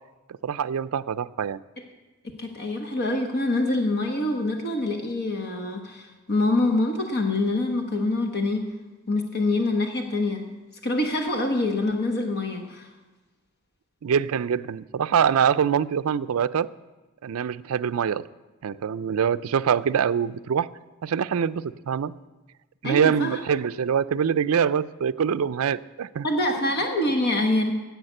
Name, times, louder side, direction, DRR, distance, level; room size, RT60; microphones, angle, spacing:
voice 1, 0.4-1.6 14.0-16.7 17.2-18.2 18.6-20.7 21.0-22.1 22.8-26.3, right 7 dB, 65° right, 16 dB, 0.4 m, -24 dB
voice 2, 2.4-8.7 9.1-10.4 10.8-12.9 22.8-23.4 26.2-27.7, left 2 dB, 50° left, 3 dB, 1.1 m, -25 dB
10.5 x 7.9 x 7.8 m, 1.2 s
head